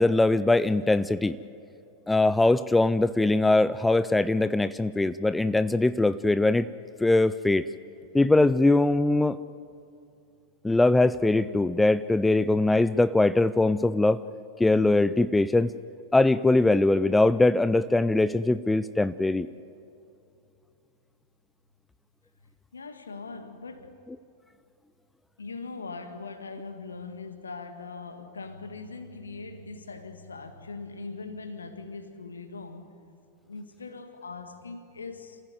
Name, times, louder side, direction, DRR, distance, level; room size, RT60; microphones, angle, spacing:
voice 1, 0.0-1.4 2.1-6.7 7.0-7.7 8.1-9.4 10.6-14.2 14.6-15.7 16.1-19.5, left 2 dB, 5° left, 0.5 m, -22 dB
voice 2, 22.7-24.0 25.4-32.9 33.4-35.4, left 4 dB, 75° left, 1.9 m, -41 dB
28.0 x 15.5 x 9.4 m
figure-of-eight pair, 90°, 0 cm